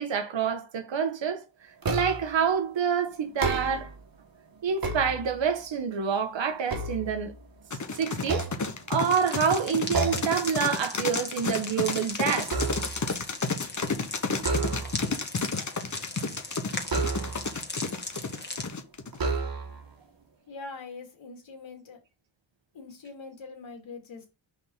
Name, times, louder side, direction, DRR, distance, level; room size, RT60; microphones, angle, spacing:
voice 1, 0.0-1.4 1.9-3.9 4.6-7.3 7.9-8.5 8.9-12.6, right 7 dB, 65° right, 1.4 m, -27 dB
sound 1, 1.8-2.4 3.2-4.0 4.6-5.7 6.2-7.7 8.2-9.2 9.9-10.4 10.8-11.1 11.4-13.1 14.4-15.2 16.8-17.6 18.4-18.5 19.1-19.9, right 3 dB, 45° right, 1.8 m, -31 dB
sound 2, 7.7-19.2, left 4 dB, 35° left, 1.4 m, -31 dB
sound 3, 9.0-18.7, left 2 dB, 20° left, 1.9 m, -39 dB
voice 2, 20.5-22.0 22.7-24.3, left 4 dB, 65° left, 3.1 m, -43 dB
6.1 x 5.0 x 4.1 m
cardioid pair, 65°, 49 cm